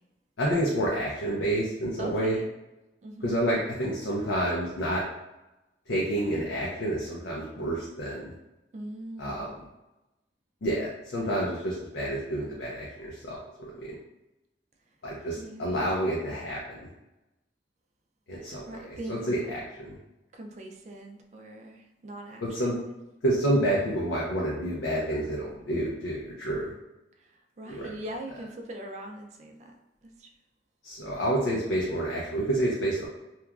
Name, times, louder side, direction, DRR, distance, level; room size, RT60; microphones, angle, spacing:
voice 1, 0.4-2.4 3.2-5.0 5.9-8.3 9.2-9.5 10.6-13.9 15.0-16.8 18.3-18.8 19.1-20.0 22.4-22.8 23.2-26.7 27.7-27.9 30.8-33.1, right 1 dB, 85° left, -4 dB, 0.5 m, -29 dB
voice 2, 2.0-2.5 3.0-3.4 8.7-9.5 15.3-15.8 18.4-19.3 20.3-23.0 27.2-27.3 27.6-29.7 30.0-30.3, right 1 dB, 40° right, 3 dB, 0.3 m, -41 dB
2.9 x 2.3 x 2.3 m, 0.98 s
head